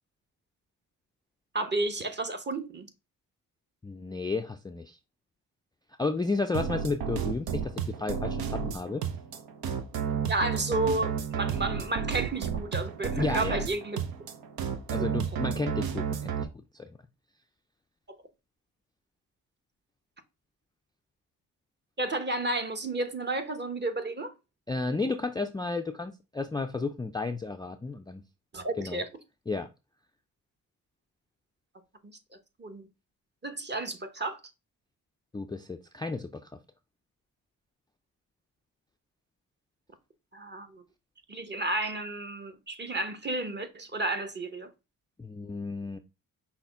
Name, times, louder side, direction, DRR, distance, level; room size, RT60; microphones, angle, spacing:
voice 1, 1.5-2.9 9.9-14.0 15.0-15.1 22.0-24.3 28.5-29.0 32.0-32.1 32.6-32.9 33.4-34.4 40.3-40.8 41.3-44.7, right 2 dB, 30° right, 0.9 m, -32 dB
voice 2, 3.8-5.0 6.0-9.0 13.2-13.6 14.9-16.5 16.7-16.9 24.7-28.2 28.8-29.0 29.5-29.7 35.3-36.5 45.2-46.0, left 3 dB, 10° left, 0.3 m, -32 dB
sound 1, 6.5-16.4, right 7 dB, 70° right, 0.7 m, -32 dB
5.7 x 2.1 x 3.5 m
supercardioid pair, 50°, 37 cm